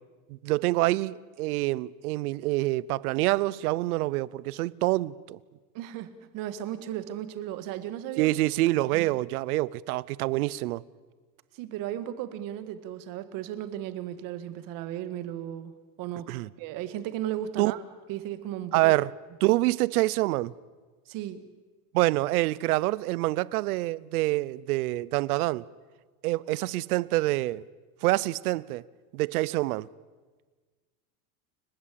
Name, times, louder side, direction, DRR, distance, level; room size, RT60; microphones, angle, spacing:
voice 1, 0.4-5.4 8.2-10.8 16.3-16.5 17.6-17.7 18.7-19.1 19.4-20.5 21.9-25.6 26.2-27.6 28.0-28.8 29.1-29.9, right 19 dB, 90° right, 0.8 m, -26 dB
voice 2, 5.7-8.3 8.9-9.1 11.5-15.7 16.0-16.3 16.6-17.8 18.1-18.9 21.1-21.4, right 12 dB, 50° right, 1.9 m, -35 dB
29.5 x 16.5 x 8.7 m
supercardioid pair, 155°, 43 cm